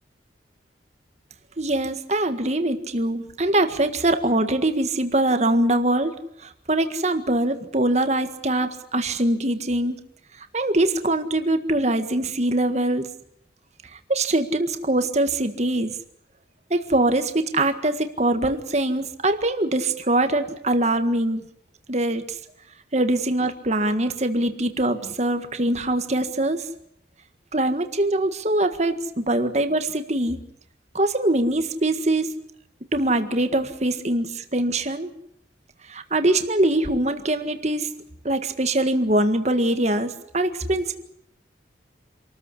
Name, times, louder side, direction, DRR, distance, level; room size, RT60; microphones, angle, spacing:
voice 1, 1.6-6.1 6.4-9.9 10.5-13.1 14.1-16.0 16.7-21.4 21.9-22.4 22.9-26.7 27.5-30.4 30.9-32.3 32.9-35.1 35.9-37.9 38.2-40.9, right 1 dB, 35° right, 8 dB, 1.8 m, -23 dB
27.0 x 14.0 x 10.0 m, 0.72 s
head